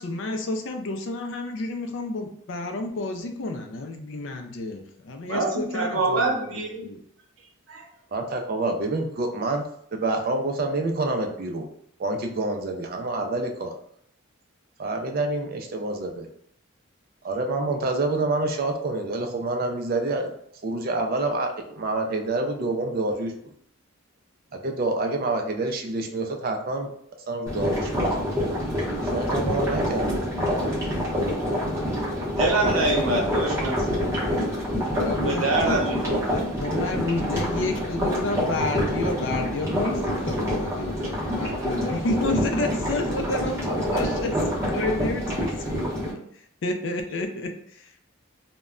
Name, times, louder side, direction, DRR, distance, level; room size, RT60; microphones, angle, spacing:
voice 1, 0.0-7.0 32.5-33.2 34.9-35.8 36.6-46.2 46.6-47.9, left 2 dB, 60° left, 5 dB, 0.4 m, -30 dB
voice 2, 5.3-6.9 7.7-7.8 32.4-34.1 35.1-36.5, right 2 dB, 85° right, 0 dB, 0.7 m, -26 dB
voice 3, 8.1-9.6 9.9-11.7 12.0-13.7 14.8-16.3 17.2-20.3 20.6-23.3 24.5-26.9 27.3-28.1 29.1-30.2, right 2 dB, 45° right, 4 dB, 0.4 m, -27 dB
sound 1, 27.5-46.1, equal, 15° right, 0.7 m, -26 dB
2.1 x 2.1 x 3.6 m, 0.69 s
head